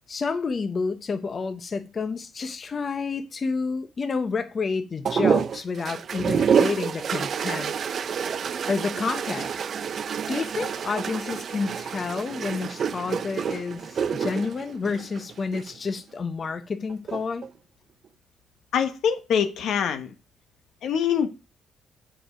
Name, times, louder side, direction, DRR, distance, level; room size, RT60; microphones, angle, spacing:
voice 1, 0.1-7.7 8.7-9.7 10.3-17.5, left 4 dB, 40° left, 0.7 m, -29 dB
sound 1, 5.0-15.7 16.9-17.5, right 7 dB, 55° right, 0.5 m, -28 dB
voice 2, 18.7-20.1 20.8-21.3, left 7 dB, 75° left, 1.0 m, -24 dB
7.8 x 5.1 x 4.9 m
cardioid pair, 90°, 0 cm